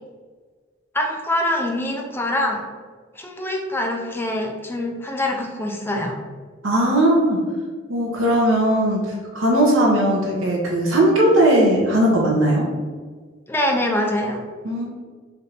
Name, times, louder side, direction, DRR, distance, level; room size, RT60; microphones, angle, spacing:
voice 1, 0.9-2.6 3.1-6.1 13.5-14.5, left 1 dB, 10° left, 1 dB, 0.5 m, -24 dB
voice 2, 6.6-7.4 7.9-12.7 14.6-14.8, right 1 dB, 75° right, -3 dB, 0.9 m, -18 dB
3.3 x 2.6 x 4.1 m, 1.5 s
head